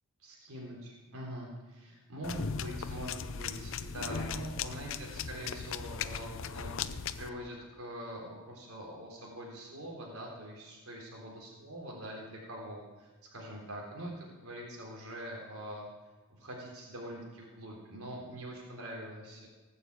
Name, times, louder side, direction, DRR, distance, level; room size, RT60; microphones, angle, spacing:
voice 1, 0.2-15.9 16.3-19.5, right 1 dB, 90° right, -3 dB, 3.7 m, -44 dB
sound 1, 2.2-7.3, left 6 dB, 65° left, 0.6 m, -38 dB
18.5 x 7.0 x 8.2 m, 1.2 s
head